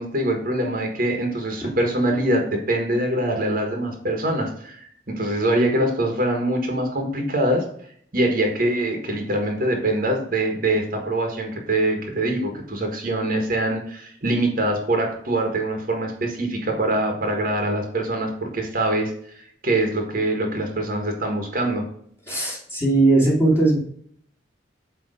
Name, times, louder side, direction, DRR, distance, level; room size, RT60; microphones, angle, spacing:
voice 1, 0.0-7.6 8.1-21.8, right 1 dB, 50° right, 2 dB, 1.5 m, -24 dB
voice 2, 22.3-23.8, right 2 dB, 15° left, -7 dB, 2.3 m, -18 dB
8.1 x 3.3 x 5.0 m, 0.62 s
head